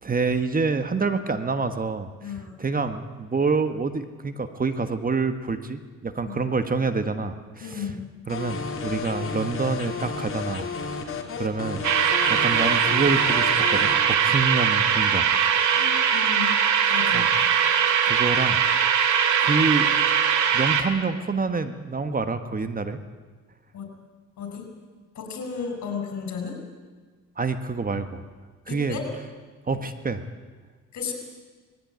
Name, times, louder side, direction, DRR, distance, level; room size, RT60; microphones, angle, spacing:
voice 1, 0.0-2.1 2.6-7.8 8.3-10.7 11.4-11.8 12.3-15.3 17.1-17.3 18.0-18.6 19.4-20.0 20.5-23.0 27.4-28.2 28.7-29.0 29.7-30.2, right 4 dB, 30° right, 9 dB, 1.5 m, -27 dB
voice 2, 2.2-2.6 6.2-6.4 7.6-8.0 15.7-16.6 16.9-17.3 23.7-23.9 24.4-24.7 25.1-26.6 28.7-29.1 30.9-31.1, left 6 dB, 65° left, 4 dB, 5.6 m, -34 dB
sound 1, 8.3-13.9, left 5 dB, 45° left, 3.4 m, -32 dB
sound 2, 11.8-20.8, right 8 dB, 75° right, 2.2 m, -21 dB
20.5 x 16.5 x 9.5 m, 1.4 s
cardioid pair, 90°, 30 cm